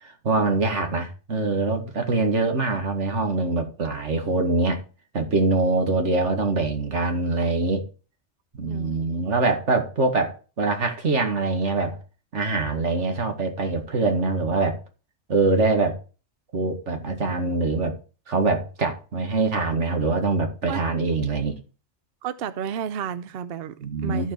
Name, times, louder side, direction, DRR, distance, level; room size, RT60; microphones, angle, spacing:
voice 1, 0.0-4.8 5.1-7.8 8.6-12.0 12.3-14.8 15.3-16.0 16.5-18.0 18.3-21.6 23.8-24.3, right 3 dB, 85° right, 2.1 m, -24 dB
voice 2, 8.6-9.0 20.7-20.8 22.2-23.7 24.0-24.3, right 8 dB, 60° right, 0.7 m, -32 dB
14.0 x 4.7 x 4.5 m
omnidirectional pair, 1.2 m